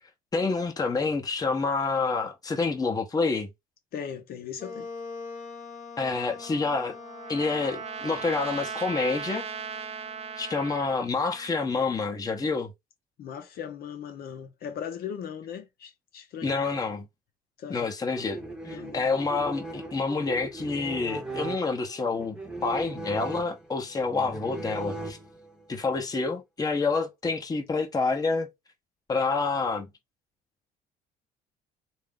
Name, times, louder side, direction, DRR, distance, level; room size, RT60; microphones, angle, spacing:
voice 1, 0.3-3.5 6.0-7.0 7.3-9.5 10.4-12.7 16.4-17.1 17.7-25.2 25.7-28.5 29.1-29.9, left 4 dB, 20° left, 0.9 m, -28 dB
voice 2, 3.9-4.9 13.2-16.7 17.6-17.9 18.7-19.2, left 8 dB, 65° left, 0.8 m, -38 dB
Wind instrument woodwind instrument, 4.6-12.0, left 4 dB, 45° left, 1.2 m, -45 dB
Trumpet, 6.4-11.1, right 7 dB, 40° right, 0.4 m, -38 dB
sound 1, 18.1-25.6, right 2 dB, 5° right, 0.9 m, -38 dB
3.4 x 2.6 x 3.6 m
cardioid pair, 110°, 17 cm